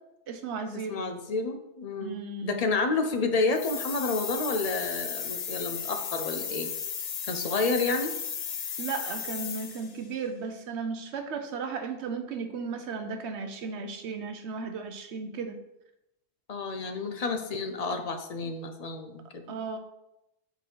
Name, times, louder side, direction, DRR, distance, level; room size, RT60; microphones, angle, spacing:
voice 1, 0.3-1.1 2.0-2.6 8.8-15.6 19.5-19.8, right 4 dB, 80° right, 7 dB, 1.1 m, -35 dB
voice 2, 0.9-6.7 7.3-8.1 16.5-19.6, left 3 dB, 40° left, 5 dB, 0.7 m, -30 dB
sound 1, 3.5-10.0, left 7 dB, 65° left, 1.0 m, -35 dB
6.9 x 4.1 x 4.6 m, 0.89 s
omnidirectional pair, 1.1 m